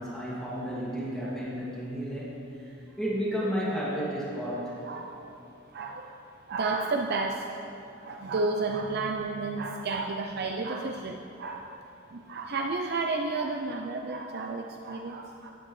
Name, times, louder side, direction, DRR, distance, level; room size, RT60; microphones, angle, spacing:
voice 1, 0.0-2.3 2.6-4.9, equal, 5° left, -9 dB, 2.3 m, -32 dB
voice 2, 5.7-6.1 6.5-7.5 8.0-11.7 12.1-15.5, right 3 dB, 55° right, 2 dB, 0.6 m, -31 dB
16.0 x 9.5 x 3.2 m, 3.0 s
head